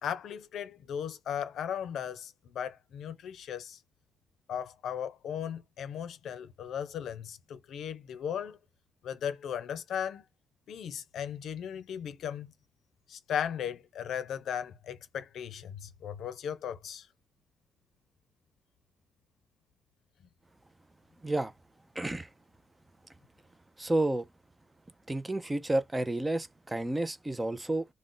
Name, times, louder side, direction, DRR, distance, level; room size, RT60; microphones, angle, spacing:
voice 1, 0.0-3.8 4.5-8.6 9.0-10.2 10.7-12.5 13.1-17.1, left 8 dB, 75° left, 0.5 m, -37 dB
voice 2, 22.0-22.3 23.8-24.3 25.1-27.9, right 2 dB, 15° right, 0.4 m, -30 dB
2.5 x 2.1 x 3.7 m
cardioid pair, 105°, 0 cm